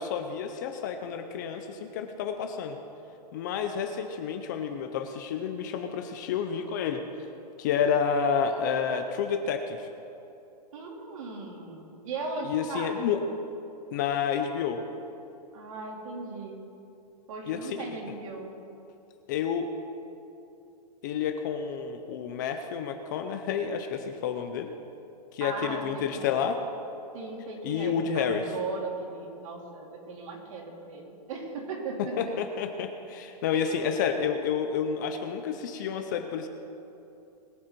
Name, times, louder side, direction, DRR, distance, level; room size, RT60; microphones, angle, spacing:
voice 1, 0.0-2.8 3.3-7.0 7.6-9.9 12.4-13.2 13.9-14.8 17.5-17.8 18.1-18.2 19.3-19.7 21.0-24.7 25.3-26.6 27.6-28.5 32.0-36.5, left 7 dB, 30° left, 6 dB, 0.6 m, -30 dB
voice 2, 10.7-13.0 15.5-16.6 17.3-18.6 25.4-26.3 27.1-32.2 33.5-33.9, right 3 dB, 55° right, -1 dB, 3.0 m, -37 dB
21.5 x 7.8 x 4.5 m, 2.8 s
hypercardioid pair, 175°, 21 cm